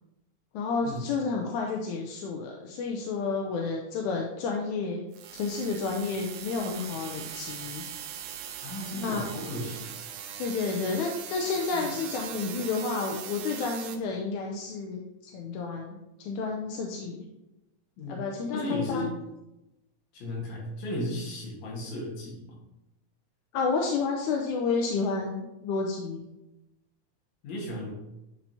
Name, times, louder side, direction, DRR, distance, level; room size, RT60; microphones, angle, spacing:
voice 1, 0.5-5.0 5.3-7.8 8.9-9.3 10.4-17.2 18.1-19.1 23.5-26.2, left 4 dB, 80° left, 1 dB, 2.0 m, -31 dB
sound 1, 5.1-14.0, right 9 dB, 80° right, 2.1 m, -40 dB
voice 2, 8.6-9.9 11.7-11.9 18.0-18.3 18.5-19.1 20.1-22.6 27.4-27.9, left 1 dB, 65° left, -2 dB, 2.7 m, -35 dB
9.5 x 4.5 x 2.8 m, 0.94 s
omnidirectional pair, 3.6 m